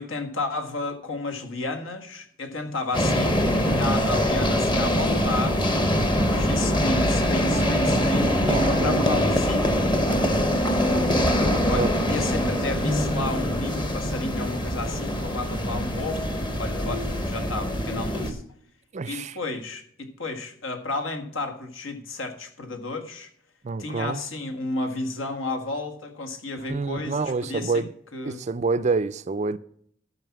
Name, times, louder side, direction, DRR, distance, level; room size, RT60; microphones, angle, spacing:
voice 1, 0.0-9.9 11.6-18.4 19.0-23.3 23.8-27.8 28.1-28.4, left 2 dB, 75° left, 1.7 m, -32 dB
sound 1, 2.9-18.3, equal, 20° left, 1.0 m, -23 dB
voice 2, 8.4-9.0 11.4-11.9 18.9-19.3 23.6-24.2 26.7-27.9 28.2-29.6, right 4 dB, 35° right, 0.4 m, -27 dB
12.5 x 5.7 x 5.9 m
head